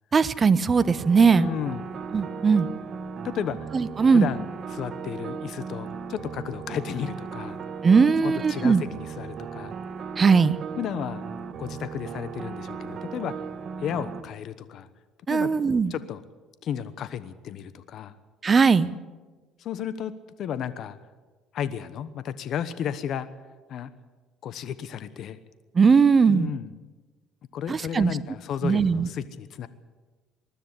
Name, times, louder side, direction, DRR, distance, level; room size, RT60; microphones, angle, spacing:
voice 1, 0.1-1.5 2.1-2.7 3.7-4.3 7.8-8.8 10.2-10.6 15.3-15.9 18.4-18.9 25.7-26.5 27.7-28.1 28.6-29.1, right 5 dB, 30° right, 15 dB, 0.8 m, -19 dB
sound 1, 0.8-14.2, right 6 dB, 45° right, 1.3 m, -37 dB
voice 2, 1.3-1.8 3.2-3.7 4.1-7.6 8.2-9.7 10.8-11.2 11.6-13.4 13.8-14.9 15.3-15.5 15.9-16.2 16.6-18.2 19.6-20.1 20.4-21.0 21.5-23.3 23.7-23.9 24.4-25.4 26.3-26.7 27.5-29.7, left 9 dB, 60° left, 13 dB, 1.0 m, -33 dB
20.5 x 13.0 x 9.8 m, 1.3 s
cardioid pair, 110°, 0 cm